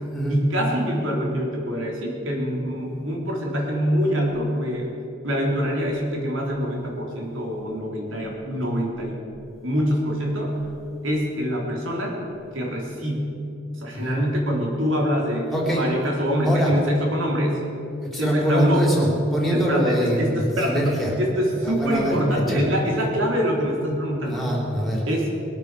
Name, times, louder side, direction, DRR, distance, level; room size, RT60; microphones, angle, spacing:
voice 1, 0.3-4.9 5.2-9.2 9.6-10.6 11.0-12.2 12.5-13.4 13.7-17.6 18.1-19.0 19.5-24.4 25.1-25.4, equal, 75° right, -1 dB, 3.7 m, -24 dB
voice 2, 15.5-15.8 16.4-16.7 18.0-21.1 21.6-22.7 24.3-25.0, equal, ahead, -2 dB, 3.5 m, -24 dB
21.0 x 8.6 x 6.8 m, 2.8 s
head